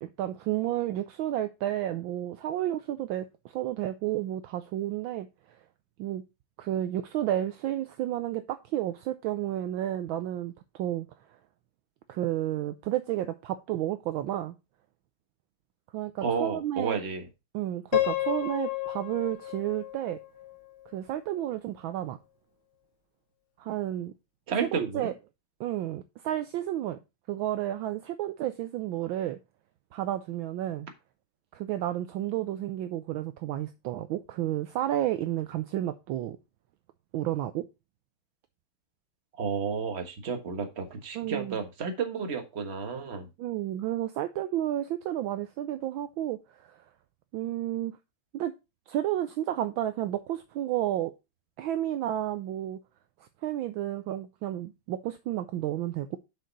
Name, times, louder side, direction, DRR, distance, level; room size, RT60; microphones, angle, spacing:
voice 1, 0.0-3.3 3.5-5.3 6.0-6.2 6.6-11.1 12.1-14.5 15.9-17.0 17.5-20.2 20.9-22.2 23.6-24.1 24.6-25.1 25.6-27.0 27.3-29.4 29.9-30.9 31.5-36.4 37.1-37.6 41.1-41.6 43.4-46.7 47.3-48.0 48.3-48.5 48.9-51.1 51.6-52.8 53.4-56.2, right 13 dB, 75° right, 1.3 m, -31 dB
voice 2, 16.2-17.3 24.5-25.1 39.4-43.3, right 6 dB, 35° right, 1.4 m, -31 dB
Piano, 17.9-20.9, left 13 dB, 75° left, 1.7 m, -32 dB
6.5 x 6.3 x 3.9 m
omnidirectional pair, 2.4 m